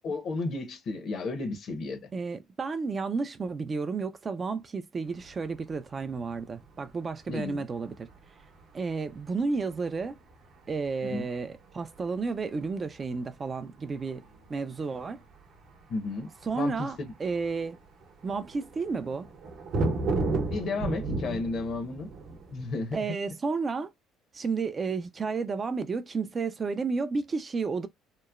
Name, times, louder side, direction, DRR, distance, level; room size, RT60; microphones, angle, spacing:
voice 1, 0.0-2.0 7.3-7.6 11.0-11.3 15.9-17.1 20.5-22.1 22.5-23.0, left 3 dB, 55° left, 0.8 m, -33 dB
voice 2, 2.1-8.1 8.7-10.2 10.7-14.2 14.5-15.2 16.4-17.8 18.2-19.3 22.9-23.9 24.3-27.9, right 4 dB, 30° right, 0.4 m, -32 dB
sound 1, 5.1-23.0, right 3 dB, 60° right, 0.8 m, -36 dB
2.9 x 2.1 x 2.3 m
cardioid pair, 105°, 0 cm